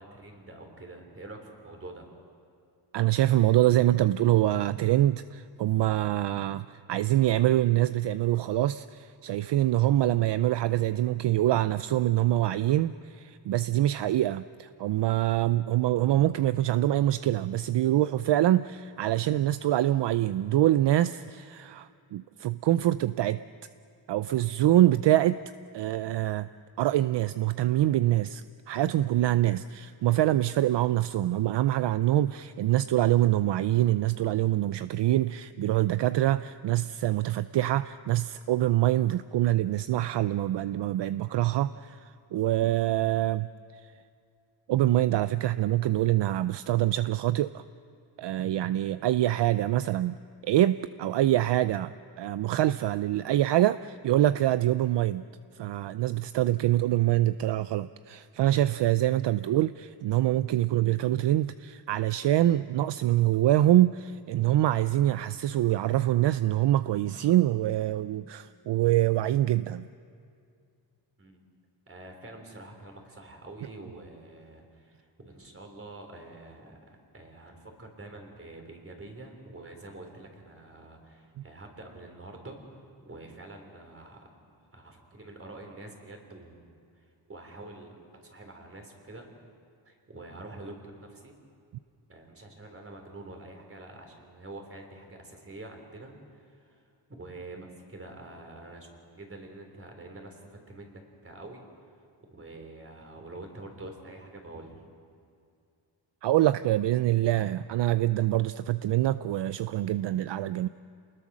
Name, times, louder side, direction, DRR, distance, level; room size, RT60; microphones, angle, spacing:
voice 1, 0.0-2.1 71.2-71.4 71.9-76.8 77.1-82.6 83.0-84.3 84.7-88.0 88.2-89.3 89.9-91.4 92.1-96.8 97.1-101.7 102.3-104.8, right 2 dB, 30° right, 3 dB, 3.9 m, -46 dB
voice 2, 2.9-23.4 24.1-25.4 25.7-26.5 26.8-43.5 44.7-47.6 48.2-50.2 50.4-55.2 55.6-69.9 106.2-110.7, right 14 dB, 70° right, 14 dB, 0.5 m, -25 dB
28.5 x 20.5 x 6.3 m, 2.4 s
wide cardioid pair, 115°, 45 cm